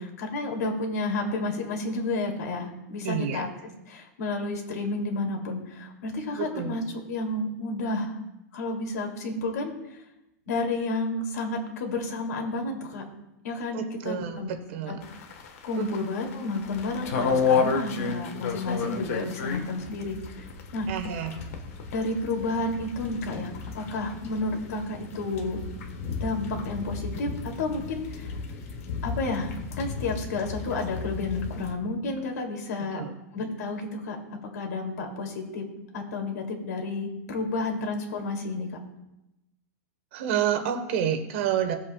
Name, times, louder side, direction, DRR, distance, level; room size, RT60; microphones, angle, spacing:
voice 1, 0.0-3.5 3.9-8.2 8.5-10.0 10.5-13.0 13.4-14.5 14.9-15.0 15.6-20.5 20.7-20.9 21.9-25.6 26.2-28.3 29.0-33.0 33.3-35.7 35.9-38.8, left 2 dB, 80° left, 1 dB, 2.6 m, -31 dB
voice 2, 3.0-3.4 6.3-6.8 13.7-15.0 15.8-16.0 20.9-21.4 32.9-33.1 40.1-41.8, right 9 dB, 45° right, 8 dB, 1.1 m, -29 dB
sound 1, 15.0-31.7, left 5 dB, 55° left, 1.3 m, -33 dB
17.5 x 7.9 x 2.3 m, 0.91 s
supercardioid pair, 175°, 9 cm